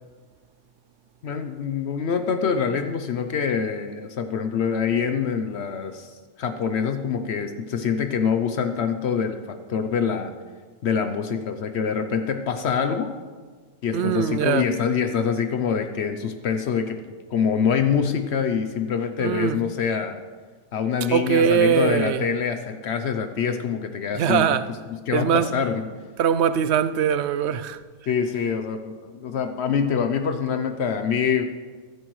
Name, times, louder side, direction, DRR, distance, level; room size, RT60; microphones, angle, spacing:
voice 1, 1.2-6.1 6.4-10.3 10.8-13.1 13.8-17.0 17.3-20.2 20.7-24.6 24.9-25.8 28.1-31.4, left 6 dB, 70° left, 0.9 m, -25 dB
voice 2, 13.9-14.7 19.2-19.6 21.1-22.2 24.1-24.7 25.1-25.5 26.2-27.8, right 8 dB, 70° right, 0.8 m, -21 dB
15.0 x 12.5 x 3.1 m
omnidirectional pair, 1.2 m